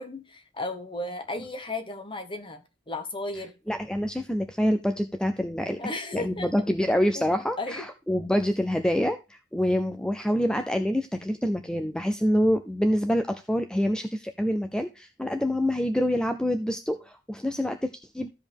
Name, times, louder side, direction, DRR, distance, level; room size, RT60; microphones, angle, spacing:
voice 1, 0.0-3.5 5.8-6.5 7.1-7.3 7.6-7.8, left 2 dB, 30° left, 7 dB, 1.5 m, -34 dB
voice 2, 3.7-5.8 6.1-18.3, equal, 5° left, 8 dB, 0.5 m, -26 dB
14.0 x 5.1 x 3.5 m, 0.27 s
head